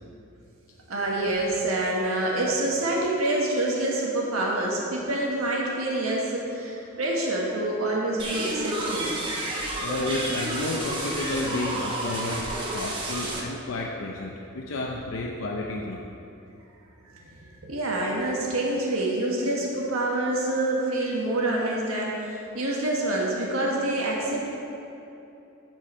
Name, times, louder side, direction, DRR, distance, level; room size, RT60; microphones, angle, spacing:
voice 1, 0.9-9.1 17.1-24.5, right 1 dB, 80° right, -3 dB, 1.4 m, -27 dB
sound 1, 8.2-13.4, right 2 dB, 25° right, 1.1 m, -31 dB
voice 2, 9.8-16.0, left 2 dB, 65° left, -1 dB, 0.6 m, -31 dB
14.0 x 4.7 x 4.4 m, 2.8 s
head